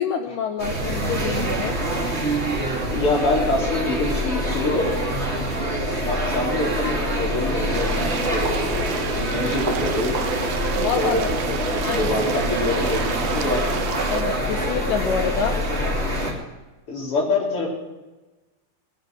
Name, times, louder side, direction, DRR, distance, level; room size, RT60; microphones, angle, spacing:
voice 1, 0.0-1.8 10.7-11.2 11.8-12.3 14.1-15.6, left 6 dB, 75° left, 4 dB, 2.1 m, -26 dB
sound 1, 0.6-16.3, equal, 25° right, 1.6 m, -25 dB
voice 2, 2.9-4.9 5.6-10.2 10.8-13.7 16.9-17.7, left 2 dB, 30° left, -2 dB, 4.5 m, -26 dB
sound 2, 7.7-14.2, right 12 dB, 80° right, 2.2 m, -33 dB
19.0 x 12.0 x 6.4 m, 1.1 s
omnidirectional pair, 5.0 m